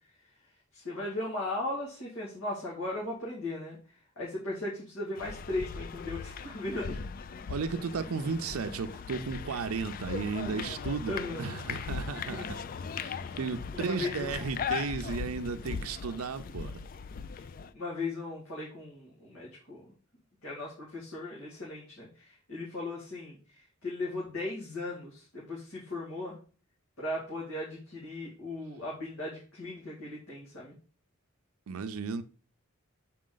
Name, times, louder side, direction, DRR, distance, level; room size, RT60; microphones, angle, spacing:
voice 1, 0.7-7.0 11.1-11.6 12.3-12.6 13.2-13.4 13.7-14.5 17.7-19.8 20.4-26.4 27.0-30.7, left 2 dB, 80° left, 2.2 m, -37 dB
sound 1, 5.2-17.7, left 6 dB, 40° left, 0.3 m, -39 dB
voice 2, 7.5-12.6 12.9-16.8 31.7-32.2, right 5 dB, 90° right, 0.5 m, -34 dB
7.4 x 4.3 x 3.8 m
head